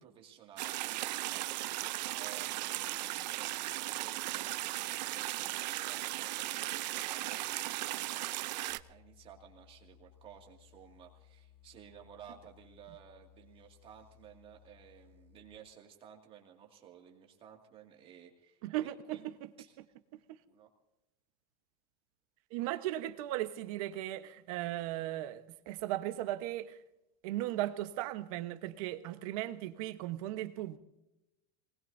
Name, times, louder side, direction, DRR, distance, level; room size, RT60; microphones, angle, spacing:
voice 1, 0.0-1.7 2.0-18.6 19.1-19.2 19.6-19.7 20.5-20.7, right 8 dB, 25° right, 2.3 m, -55 dB
sound 1, 0.6-8.8, right 17 dB, 85° right, 0.6 m, -37 dB
sound 2, 8.7-15.6, left 12 dB, 10° left, 1.8 m, -62 dB
voice 2, 18.6-19.5 19.8-19.9 20.1-20.4 22.5-26.8 27.2-30.8, right 14 dB, 55° right, 1.2 m, -37 dB
26.5 x 20.0 x 2.7 m
supercardioid pair, 170°, 21 cm